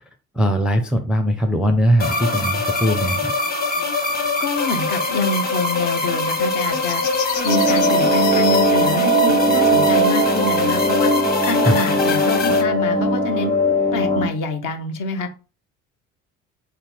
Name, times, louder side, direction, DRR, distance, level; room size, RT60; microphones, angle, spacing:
voice 1, 0.3-3.3 11.6-11.8, equal, ahead, 5 dB, 0.5 m, -20 dB
sound 1, 2.0-12.6, left 3 dB, 20° left, 1.1 m, -23 dB
voice 2, 4.4-7.0 7.4-11.1 11.4-13.5 13.9-15.3, left 3 dB, 50° left, 5 dB, 0.9 m, -26 dB
sound 2, 6.2-8.7 10.8-10.9 11.8-11.9, left 11 dB, 70° left, 0.6 m, -31 dB
sound 3, 7.4-14.3, right 1 dB, 90° left, 1.7 m, -19 dB
4.1 x 2.9 x 3.6 m, 0.34 s
figure-of-eight pair, 55°, 41 cm